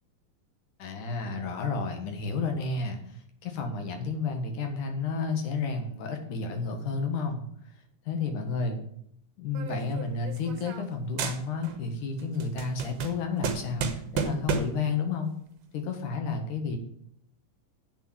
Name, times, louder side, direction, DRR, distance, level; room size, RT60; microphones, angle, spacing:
voice 1, 0.8-7.5 8.1-8.8 9.4-15.3 15.7-16.8, left 4 dB, 70° left, 5 dB, 2.9 m, -31 dB
sound 1, 9.5-10.9 11.2-11.9 12.2-14.9, right 7 dB, 65° right, 1.8 m, -33 dB
8.6 x 6.9 x 7.9 m, 0.69 s
omnidirectional pair, 3.9 m